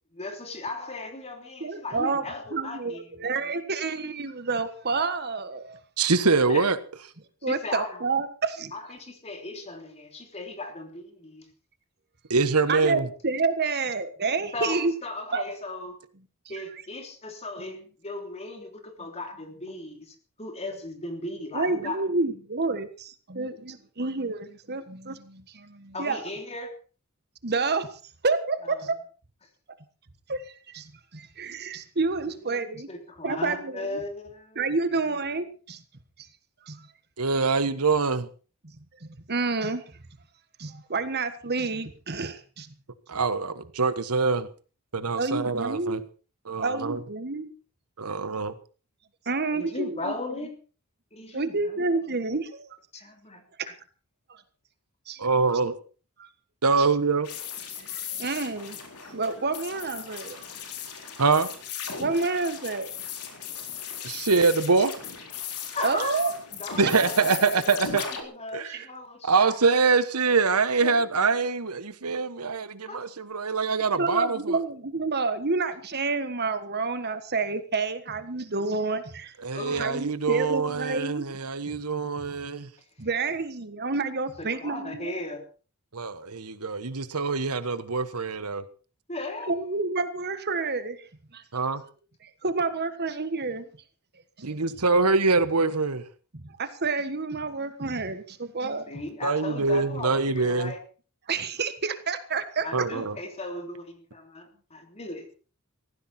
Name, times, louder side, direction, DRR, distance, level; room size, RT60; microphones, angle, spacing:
voice 1, 0.1-3.3 6.5-6.7 7.4-8.0 8.7-11.5 14.5-15.9 16.5-22.0 25.9-26.7 32.2-35.2 49.5-50.6 51.1-52.0 52.9-53.7 65.7-69.6 70.8-71.0 72.9-73.0 79.5-80.1 84.4-85.4 89.1-89.5 98.9-100.8 102.6-105.3, left 2 dB, 30° left, 3.3 m, -37 dB
voice 2, 1.6-2.2 2.5-5.8 7.4-8.7 12.7-14.9 15.3-15.4 16.4-16.6 21.5-26.3 27.4-27.9 28.2-29.0 30.3-32.9 33.2-34.0 34.5-35.8 36.6-36.9 38.6-38.7 39.0-39.8 40.6-42.7 45.1-46.0 46.6-47.5 49.2-50.1 51.3-52.7 54.3-54.4 55.1-55.2 56.2-56.3 56.8-56.9 57.8-58.8 59.0-60.4 62.0-62.9 65.8-66.3 68.7-68.9 74.0-79.3 79.7-81.4 81.7-81.8 82.3-82.4 83.0-85.2 89.5-91.0 91.3-91.4 92.2-93.7 94.4-94.8 96.3-98.9 101.3-102.9, right 3 dB, 45° right, 1.5 m, -29 dB
voice 3, 6.0-6.8 12.3-13.1 37.2-38.3 43.1-44.5 44.9-46.0 46.4-47.0 48.0-48.5 55.2-55.8 56.6-57.3 61.2-61.5 64.0-64.9 66.8-68.1 68.5-68.8 69.2-74.6 79.4-82.7 85.9-88.6 91.5-91.8 94.4-96.0 99.2-100.7 102.7-103.2, right 4 dB, 85° right, 1.3 m, -24 dB
sound 1, 57.2-68.2, left 7 dB, 85° left, 4.0 m, -37 dB
18.5 x 15.0 x 4.4 m
head